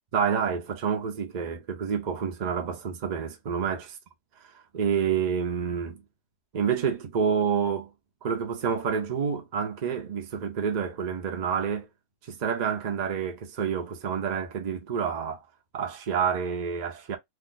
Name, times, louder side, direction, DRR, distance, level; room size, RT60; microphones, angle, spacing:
voice 1, 0.1-3.9 4.5-6.0 6.5-7.9 8.2-11.9 12.3-15.4 15.7-17.2, right 7 dB, 65° right, 0.4 m, -28 dB
2.8 x 2.2 x 3.9 m
omnidirectional pair, 1.8 m